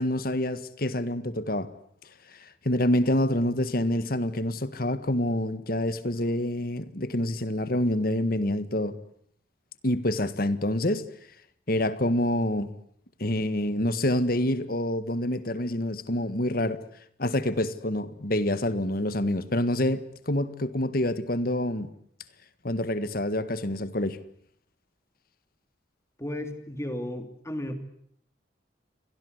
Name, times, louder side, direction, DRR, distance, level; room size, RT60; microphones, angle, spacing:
voice 1, 0.0-1.7 2.6-8.9 9.8-11.0 11.7-12.7 13.2-16.8 17.2-21.9 22.6-24.2, left 1 dB, 50° left, 13 dB, 1.7 m, -27 dB
voice 2, 26.2-27.7, left 1 dB, 15° left, 7 dB, 3.1 m, -34 dB
29.0 x 23.0 x 8.1 m, 0.66 s
head